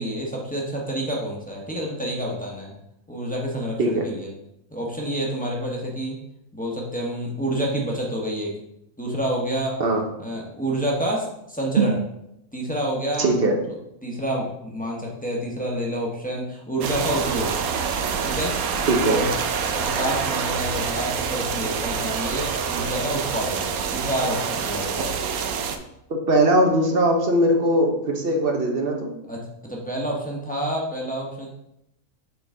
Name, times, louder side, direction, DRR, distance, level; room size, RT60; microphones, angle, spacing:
voice 1, 0.0-2.7 3.1-4.3 4.7-6.2 6.5-8.5 9.0-9.8 10.2-12.0 12.5-13.4 14.0-17.5 18.2-18.6 19.1-19.3 19.7-23.6 23.9-25.2 29.3-31.5, right 1 dB, 5° left, -3 dB, 1.1 m, -28 dB
voice 2, 13.2-13.6 18.9-19.2 26.1-29.1, right 1 dB, 50° right, 2 dB, 0.9 m, -20 dB
sound 1, 16.8-25.8, right 6 dB, 85° right, 1.1 m, -26 dB
6.9 x 3.9 x 3.8 m, 0.81 s
omnidirectional pair, 1.5 m